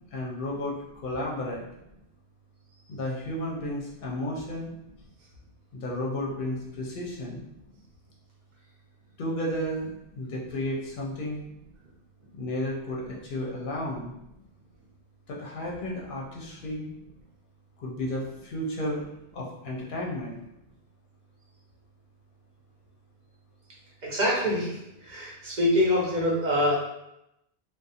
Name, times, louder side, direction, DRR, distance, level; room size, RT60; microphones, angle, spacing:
voice 1, 0.1-1.6 2.9-4.7 5.7-7.4 9.2-9.9 10.2-11.4 12.3-14.1 15.3-16.9 17.8-19.0 19.3-20.4, left 1 dB, 60° left, -2 dB, 0.6 m, -32 dB
voice 2, 24.0-26.8, left 1 dB, 50° right, -4 dB, 0.8 m, -25 dB
2.4 x 2.0 x 2.7 m, 0.84 s
omnidirectional pair, 1.1 m